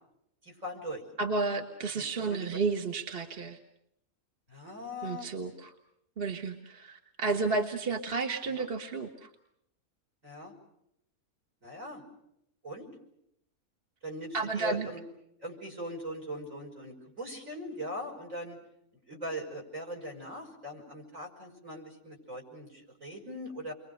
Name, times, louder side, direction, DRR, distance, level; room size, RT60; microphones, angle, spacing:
voice 1, 0.4-1.0 1.9-2.4 4.5-5.3 7.3-7.5 8.4-8.7 10.2-10.5 11.6-12.0 12.6-12.9 14.0-15.0 15.4-18.6 19.1-23.7, equal, 60° right, 2 dB, 6.3 m, -40 dB
voice 2, 1.2-3.6 5.0-5.7 6.2-9.3 14.3-14.9, right 4 dB, 40° right, 4 dB, 1.5 m, -32 dB
30.0 x 23.0 x 6.5 m, 0.78 s
omnidirectional pair, 1.5 m